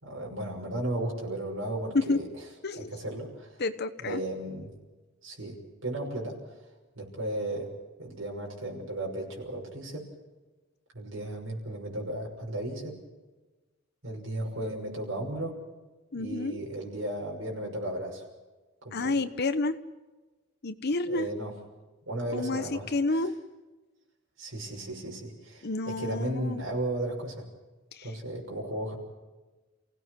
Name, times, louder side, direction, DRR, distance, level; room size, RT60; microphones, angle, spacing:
voice 1, 0.0-2.3 2.8-3.6 4.0-4.7 5.2-6.4 7.0-7.7 8.0-10.1 10.9-13.0 14.0-15.6 16.1-18.2 18.8-19.1 21.0-21.5 22.1-22.8 24.4-25.7 26.0-27.4 28.0-29.0, right 1 dB, 80° right, -1 dB, 6.0 m, -35 dB
voice 2, 2.6-2.9 3.6-4.2 16.1-16.6 18.9-19.8 20.6-21.3 22.3-23.3 25.6-26.6 27.9-28.1, left 3 dB, 55° left, 10 dB, 1.0 m, -29 dB
29.0 x 17.0 x 6.3 m, 1.2 s
head